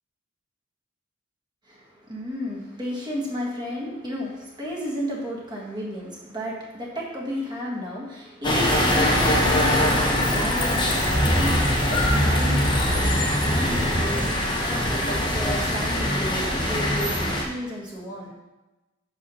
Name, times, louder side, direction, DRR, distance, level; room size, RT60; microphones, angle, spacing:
voice 1, 2.1-18.3, equal, 20° right, -5 dB, 1.6 m, -32 dB
sound 1, 8.4-17.4, left 1 dB, 25° left, 1.0 m, -22 dB
5.9 x 4.9 x 5.5 m, 1.1 s
head